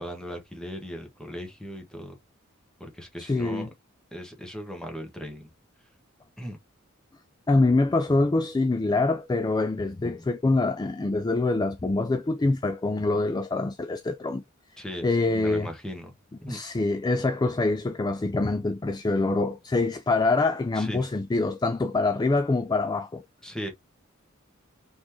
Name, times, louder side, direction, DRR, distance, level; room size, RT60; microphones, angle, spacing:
voice 1, 0.0-2.2 2.8-3.7 4.1-5.5 6.4-6.6 14.8-16.1 16.4-16.6 20.7-21.1 23.4-23.7, equal, 5° left, 1.3 m, -38 dB
voice 2, 3.2-3.7 7.5-14.4 15.0-15.7 16.5-23.2, left 3 dB, 20° left, 0.3 m, -25 dB
4.1 x 3.5 x 2.9 m
head